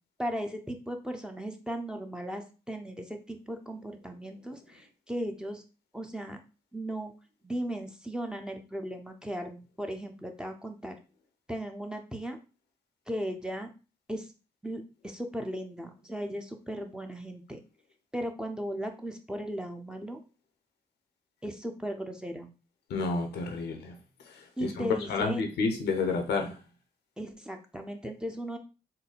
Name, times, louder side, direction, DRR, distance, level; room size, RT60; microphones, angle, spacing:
voice 1, 0.2-5.6 5.9-6.4 6.7-7.1 7.4-11.0 11.5-12.4 13.1-13.7 14.1-14.3 14.6-17.6 18.1-20.2 21.4-22.5 24.6-25.4 27.2-28.6, equal, 5° right, 0.9 m, -36 dB
voice 2, 22.9-24.0 24.6-26.6, left 4 dB, 80° left, 0.8 m, -30 dB
3.9 x 2.2 x 4.0 m
supercardioid pair, 50°, 17 cm